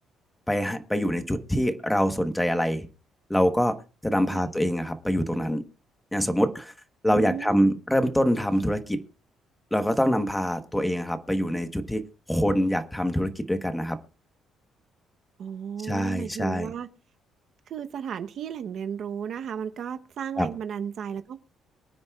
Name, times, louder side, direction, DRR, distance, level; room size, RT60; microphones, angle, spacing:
voice 1, 0.5-2.9 3.3-3.8 4.0-5.6 6.1-6.7 7.0-9.0 9.7-12.0 12.3-14.0 15.8-16.7 20.4-20.5, equal, 5° left, 1.1 m, -25 dB
voice 2, 7.1-7.8 15.4-16.9 17.7-21.4, right 8 dB, 55° right, 0.8 m, -34 dB
24.0 x 9.4 x 2.3 m
cardioid pair, 130°, 0 cm